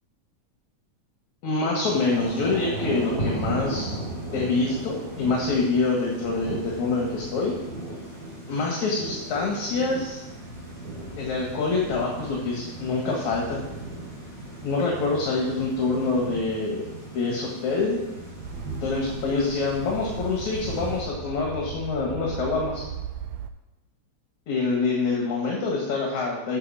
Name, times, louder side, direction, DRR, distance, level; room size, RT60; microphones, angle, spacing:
voice 1, 1.4-4.0 4.3-7.6 8.5-10.2 11.2-13.6 14.6-18.0 18.8-22.8 24.5-26.6, left 3 dB, 60° left, -1 dB, 2.9 m, -26 dB
Thunder / Rain, 1.8-21.0, right 1 dB, 30° right, 3.9 m, -36 dB
sound 1, 18.4-23.5, right 7 dB, 80° right, 1.6 m, -37 dB
9.8 x 7.0 x 7.3 m, 1.0 s
omnidirectional pair, 3.8 m